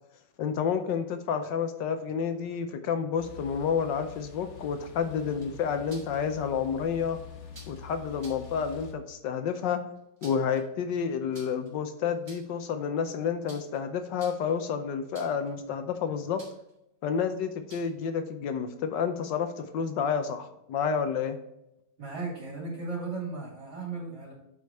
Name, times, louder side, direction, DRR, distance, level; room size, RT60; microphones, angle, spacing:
voice 1, 0.4-7.2 7.7-9.8 10.2-16.4 17.0-21.4, left 7 dB, 75° left, 8 dB, 1.4 m, -30 dB
sound 1, 3.2-8.9, left 7 dB, 50° left, 1.0 m, -46 dB
sound 2, 5.3-6.2 7.5-7.8 8.2-8.5 10.0-10.6 11.3-11.7 12.1-12.6 13.5-13.8 14.1-14.6 15.1-15.5 16.4-16.7 17.7-18.0, right 2 dB, 35° right, 2.1 m, -51 dB
voice 2, 22.0-24.3, right 3 dB, 75° right, -6 dB, 3.9 m, -36 dB
8.0 x 5.0 x 4.2 m, 0.86 s
omnidirectional pair, 2.0 m